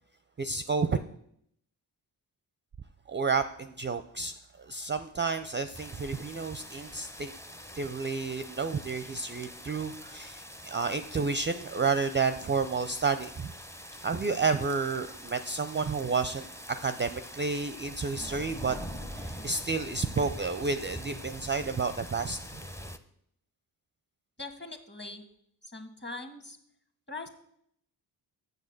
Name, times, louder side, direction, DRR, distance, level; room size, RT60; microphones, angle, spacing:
voice 1, 0.4-1.0 3.1-7.3 7.7-13.5 14.0-16.5 16.8-18.8 19.1-22.4, right 4 dB, 25° right, 10 dB, 0.5 m, -30 dB
sound 1, 5.7-23.0, equal, 5° left, 0.7 m, -44 dB
voice 2, 24.4-25.2 25.7-26.6 27.1-27.3, left 3 dB, 20° left, 7 dB, 1.5 m, -41 dB
6.7 x 6.4 x 6.5 m, 0.72 s
supercardioid pair, 40°, 47 cm